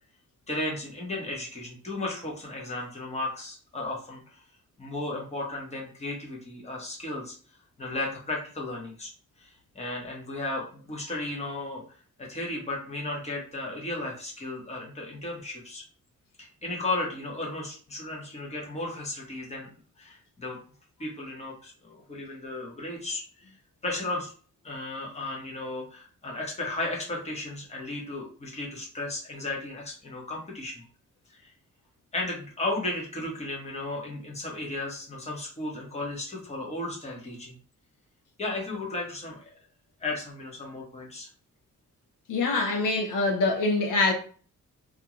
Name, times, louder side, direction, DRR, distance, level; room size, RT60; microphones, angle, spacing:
voice 1, 0.5-4.4 4.8-7.3 7.8-9.1 9.4-11.8 12.2-15.8 16.4-19.7 20.0-20.6 21.0-23.5 23.8-24.3 24.6-30.8 31.3-31.5 32.1-37.6 38.4-39.5 40.0-41.3, left 2 dB, 20° left, 0.8 m, -34 dB
voice 2, 42.3-44.1, left 3 dB, 75° left, 0.6 m, -24 dB
2.4 x 2.2 x 2.9 m
wide cardioid pair, 140°, 32 cm